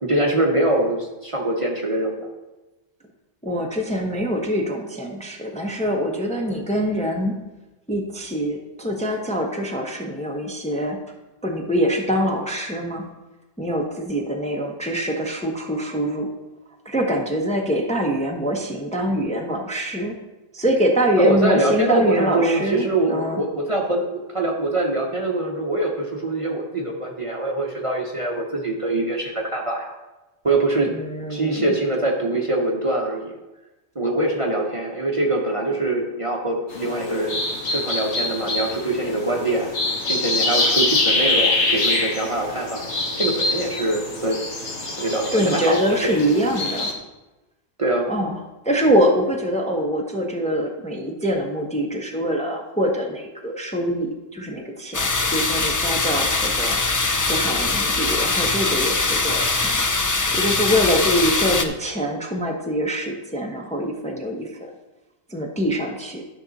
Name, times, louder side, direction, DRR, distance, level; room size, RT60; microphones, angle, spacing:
voice 1, 0.0-2.3 21.2-29.9 30.4-30.9 31.3-33.4 33.9-37.4 37.7-39.7 40.1-42.8 43.2-44.4 45.0-45.8 46.0-46.1 47.8-48.1, right 2 dB, 30° right, 0 dB, 1.0 m, -23 dB
voice 2, 3.4-7.4 7.9-11.0 11.4-13.0 13.6-16.3 16.8-20.2 20.5-23.4 30.9-31.7 45.3-46.9 48.1-48.4 48.6-54.1 54.3-56.8 57.3-59.8 60.3-64.7 65.3-66.2, equal, 5° left, 1 dB, 0.9 m, -24 dB
sound 1, 36.7-46.9, left 2 dB, 85° left, 1.7 m, -25 dB
sound 2, 54.9-61.6, left 3 dB, 30° left, 0.4 m, -22 dB
11.5 x 5.8 x 4.1 m, 1.1 s
omnidirectional pair, 1.1 m